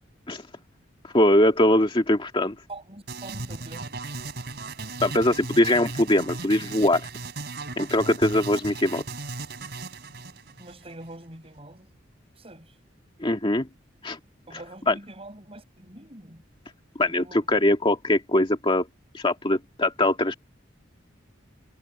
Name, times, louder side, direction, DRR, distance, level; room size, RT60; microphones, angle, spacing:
voice 1, 1.1-2.6 5.0-7.1 7.8-9.0 13.2-13.7 14.0-14.2 14.9-15.0 17.0-18.9 19.1-20.3, left 1 dB, 25° left, 2.1 m, -22 dB
voice 2, 2.7-4.0 10.6-11.9 12.4-12.7 14.5-16.4 17.0-17.7, right 2 dB, 30° right, 7.7 m, -44 dB
sound 1, 3.1-11.2, right 3 dB, 60° right, 4.0 m, -36 dB
head